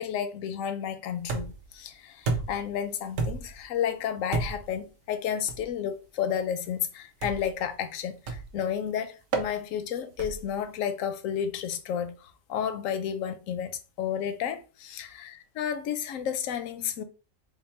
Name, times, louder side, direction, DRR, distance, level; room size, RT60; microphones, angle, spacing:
voice 1, 0.0-17.0, left 8 dB, 80° left, 1.0 m, -32 dB
sound 1, 1.3-1.7 2.3-2.7 3.2-3.6 4.3-4.7 5.5-5.7 7.2-7.6 8.3-8.6 9.3-9.5 10.2-10.5, right 4 dB, 80° right, 1.1 m, -31 dB
3.7 x 2.1 x 4.2 m
omnidirectional pair, 1.4 m